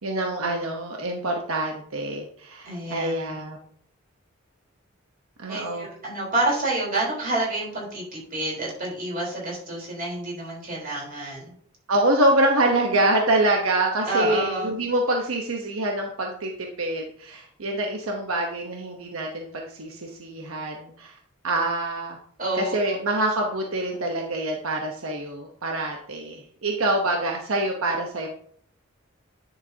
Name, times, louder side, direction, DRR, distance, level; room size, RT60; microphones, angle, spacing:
voice 1, 0.0-3.6 5.4-5.9 11.9-21.1 21.4-22.2 22.5-28.3, right 1 dB, 80° right, 1 dB, 1.0 m, -25 dB
voice 2, 2.6-3.3 5.5-11.5 14.0-14.7 22.4-23.0, right 2 dB, 40° right, -4 dB, 3.9 m, -28 dB
10.5 x 6.6 x 2.8 m, 0.62 s
head